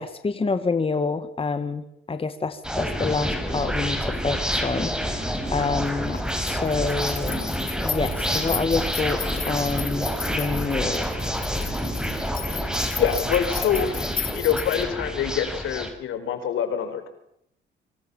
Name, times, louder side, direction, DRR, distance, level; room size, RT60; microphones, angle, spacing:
voice 1, 0.0-7.5 7.8-11.1, left 4 dB, 30° left, 10 dB, 1.9 m, -27 dB
sound 1, 2.6-15.9, equal, 5° right, 5.7 m, -28 dB
sound 2, 3.7-14.8, left 7 dB, 45° left, 1.8 m, -37 dB
voice 2, 12.3-17.1, left 8 dB, 80° left, 8 dB, 5.1 m, -26 dB
27.0 x 25.5 x 7.3 m, 0.74 s
cardioid pair, 90°, 20 cm